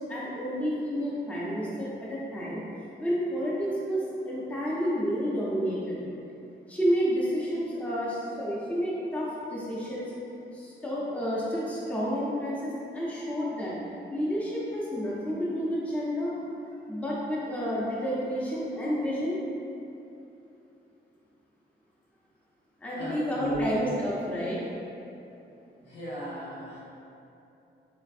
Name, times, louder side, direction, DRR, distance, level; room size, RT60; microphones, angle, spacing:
voice 1, 0.1-2.6 3.0-6.0 6.7-10.1 10.5-13.7 14.1-16.3 16.9-19.4 22.8-24.6, equal, 10° left, -7 dB, 0.5 m, -30 dB
voice 2, 22.9-24.0 25.8-26.8, right 1 dB, 70° left, -9 dB, 1.2 m, -35 dB
4.0 x 2.5 x 2.5 m, 2.8 s
cardioid pair, 120°, 18 cm